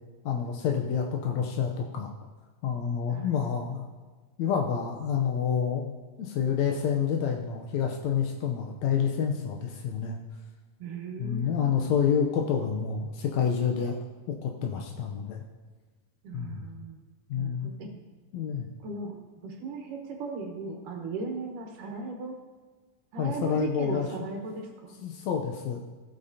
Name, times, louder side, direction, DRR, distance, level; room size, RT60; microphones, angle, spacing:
voice 1, 0.2-2.1 2.6-3.9 4.4-10.2 11.2-14.0 14.3-15.4 16.3-16.7 17.3-17.7 18.3-18.7 23.2-24.1 25.0-25.8, left 7 dB, 80° left, 1 dB, 1.6 m, -28 dB
voice 2, 10.8-12.1 16.2-17.0 17.3-18.0 18.8-19.2 19.4-22.3 23.1-25.0, right 3 dB, 70° right, 1 dB, 2.7 m, -37 dB
15.5 x 8.5 x 2.8 m, 1.4 s
omnidirectional pair, 4.1 m